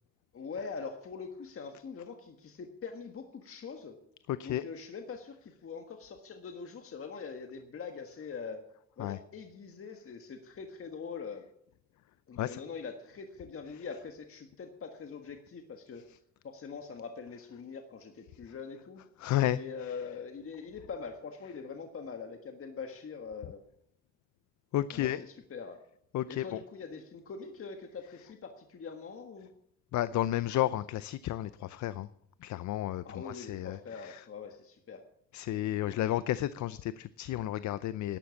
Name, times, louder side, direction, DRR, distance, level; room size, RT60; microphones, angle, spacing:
voice 1, 0.3-4.0 4.4-8.6 9.0-11.5 12.3-16.0 16.4-19.0 19.5-23.6 24.9-25.8 26.3-29.5 33.0-35.0, left 5 dB, 45° left, 5 dB, 1.6 m, -43 dB
voice 2, 4.3-4.6 9.0-9.2 12.4-12.6 19.2-19.6 24.7-25.2 26.1-26.6 29.9-32.1 32.4-34.2 35.3-38.2, left 13 dB, 70° left, 16 dB, 0.6 m, -32 dB
11.5 x 11.5 x 7.1 m, 0.74 s
cardioid pair, 90°, 30 cm